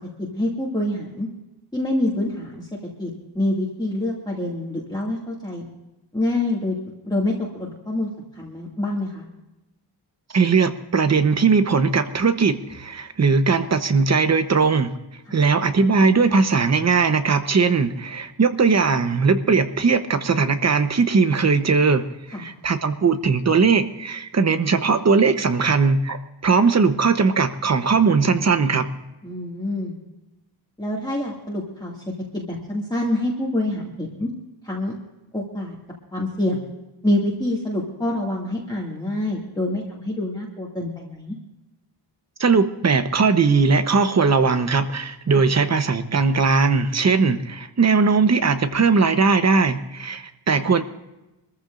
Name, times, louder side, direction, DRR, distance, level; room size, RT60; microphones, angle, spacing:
voice 1, 0.3-1.3 1.7-2.7 3.0-3.1 3.3-5.7 6.1-6.8 7.0-9.2 15.3-15.4 22.3-22.5 29.2-29.9 30.8-32.0 32.3-34.3 34.6-34.9 35.3-35.7 36.1-36.7 37.0-41.4 45.3-45.4 50.5-50.7, left 1 dB, 10° left, -5 dB, 2.3 m, -26 dB
voice 2, 10.3-14.9 15.3-28.8 42.4-50.8, right 4 dB, 35° right, 9 dB, 1.0 m, -19 dB
24.5 x 14.5 x 2.6 m, 0.99 s
wide cardioid pair, 145°, 46 cm